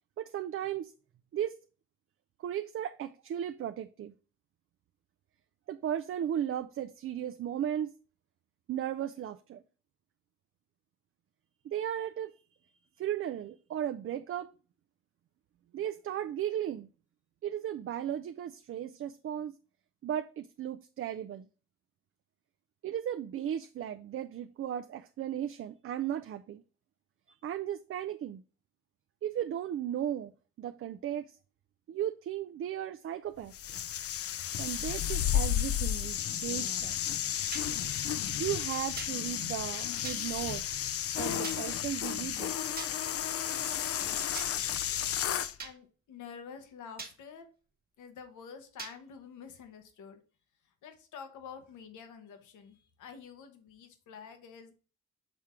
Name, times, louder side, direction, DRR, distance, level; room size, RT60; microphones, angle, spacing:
voice 1, 0.2-0.9 1.3-1.6 2.4-4.1 5.7-7.9 8.7-9.6 11.6-12.4 13.0-14.5 15.7-16.9 17.4-19.6 20.0-21.5 22.8-26.6 27.4-28.4 29.2-30.3 30.6-31.4 31.9-33.5 34.6-37.0 38.4-40.6 41.2-42.6, right 10 dB, 45° right, 0.4 m, -35 dB
sound 1, 33.5-45.5, left 10 dB, 50° left, 0.5 m, -33 dB
sound 2, 37.5-37.7 39.0-39.1 40.0-40.2 41.4-41.6 42.8-42.9 44.3-44.5 45.6-45.7 47.0-47.1 48.8-48.9, right 4 dB, 30° right, 1.2 m, -41 dB
voice 2, 45.6-47.5 48.0-50.2 50.8-54.7, left 6 dB, 80° left, 1.1 m, -48 dB
6.2 x 3.6 x 4.3 m
cardioid pair, 90°, 30 cm